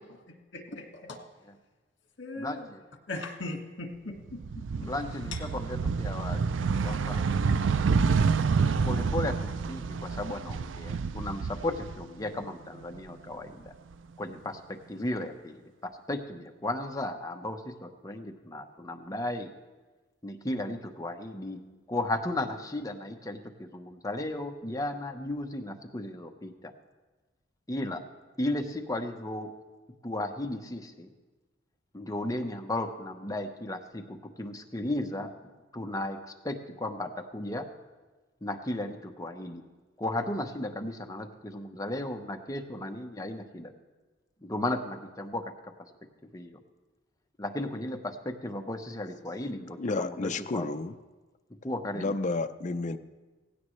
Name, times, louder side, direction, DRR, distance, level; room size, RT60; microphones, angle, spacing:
voice 1, 0.0-1.2 2.2-2.7 3.1-4.9 5.3-5.4, left 2 dB, 70° left, 3 dB, 1.8 m, -40 dB
voice 2, 2.4-2.8 4.8-6.5 6.8-7.2 8.8-13.7 14.2-19.5 20.2-21.6 21.9-26.7 27.7-28.0 28.4-29.5 30.0-31.1 31.9-35.3 35.7-37.7 38.4-39.6 40.0-43.7 44.4-45.7 46.2-46.6 47.4-50.6 51.6-52.1, left 1 dB, 20° left, 4 dB, 1.0 m, -35 dB
sound 1, 4.3-12.4 12.8-13.9, right 5 dB, 90° right, 0.5 m, -28 dB
voice 3, 49.8-51.0 51.9-53.0, left 3 dB, 40° left, 9 dB, 0.5 m, -31 dB
17.5 x 16.5 x 3.2 m, 1.2 s
head